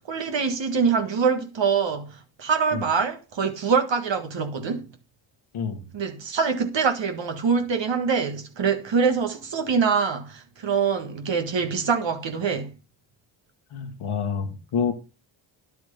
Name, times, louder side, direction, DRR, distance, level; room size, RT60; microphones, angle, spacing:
voice 1, 0.0-4.9 5.9-12.7, right 5 dB, 60° right, 1.7 m, -24 dB
voice 2, 13.7-14.9, left 6 dB, 80° left, 2.1 m, -27 dB
10.0 x 7.6 x 5.5 m
cardioid pair, 55°, 49 cm